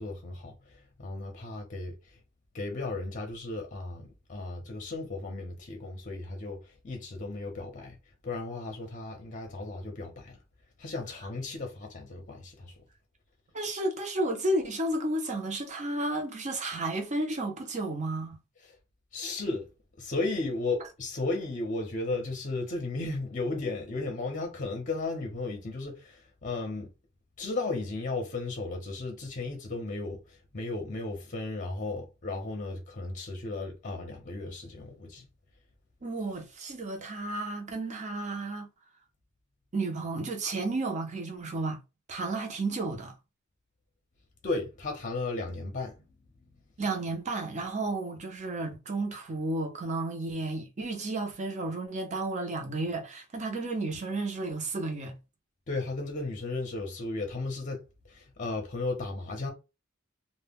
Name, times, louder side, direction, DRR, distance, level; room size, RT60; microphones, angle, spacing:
voice 1, 0.0-2.0 2.5-8.0 8.2-10.4 10.8-12.7 19.1-19.7 20.0-26.9 27.4-35.3 44.4-46.0 46.4-46.5 55.7-59.5, left 3 dB, 40° left, 0.6 m, -35 dB
voice 2, 13.5-18.4 36.0-38.7 39.7-41.8 42.1-43.1 46.8-55.2, right 2 dB, 35° right, 0.6 m, -32 dB
2.1 x 2.1 x 3.4 m
head